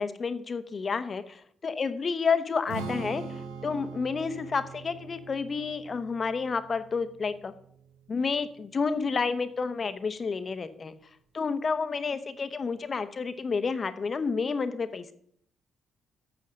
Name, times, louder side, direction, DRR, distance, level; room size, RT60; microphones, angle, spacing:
voice 1, 0.0-1.4 1.6-3.2 3.6-7.5 8.1-10.9 11.3-15.1, left 5 dB, 45° left, 11 dB, 0.9 m, -30 dB
Strum, 2.7-8.9, right 4 dB, 80° right, 1.3 m, -42 dB
8.6 x 6.4 x 6.4 m, 0.66 s
hypercardioid pair, 45°, 0 cm